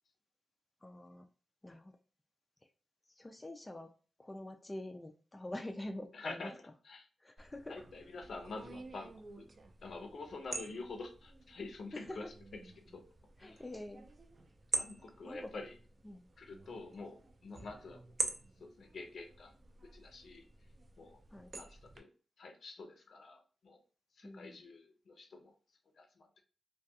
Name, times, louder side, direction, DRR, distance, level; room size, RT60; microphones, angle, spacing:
voice 1, 0.8-1.3 1.6-1.9 3.1-3.9 4.2-6.5 7.2-7.8 11.9-12.0 13.4-14.1 15.3-15.5 16.0-16.3 21.3-21.5 24.2-24.6, left 1 dB, 20° left, 4 dB, 0.3 m, -46 dB
voice 2, 6.1-7.1 7.7-9.5 9.8-12.3 12.6-13.0 13.4-13.6 14.7-15.8 16.4-18.2 18.6-19.5 19.9-20.5 21.0-21.2 21.5-22.1 22.4-23.8 24.1-25.5 25.9-26.3, left 3 dB, 70° left, 4 dB, 0.6 m, -47 dB
sound 1, 7.4-22.0, right 3 dB, 50° right, 0.4 m, -46 dB
2.3 x 2.2 x 2.7 m, 0.39 s
cardioid pair, 75°, 0 cm